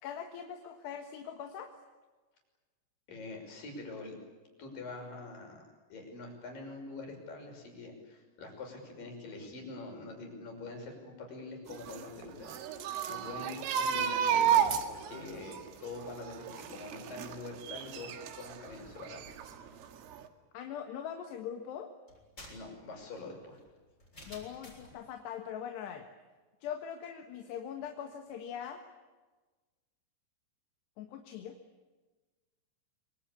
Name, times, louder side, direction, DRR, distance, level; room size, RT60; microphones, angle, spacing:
voice 1, 0.0-1.7 20.5-21.9 24.3-26.1 26.6-28.8 31.0-31.5, left 8 dB, 65° left, 5 dB, 3.3 m, -41 dB
voice 2, 3.1-4.2 4.6-18.1 18.4-19.2 22.5-23.6, left 3 dB, 45° left, 2 dB, 7.4 m, -45 dB
sound 1, 11.7-18.6 19.0-19.9 20.1-20.3, right 8 dB, 85° right, 4.3 m, -32 dB
sound 2, 22.1-25.0, left 1 dB, 15° left, 7.1 m, -52 dB
25.5 x 25.0 x 8.5 m, 1.3 s
omnidirectional pair, 5.8 m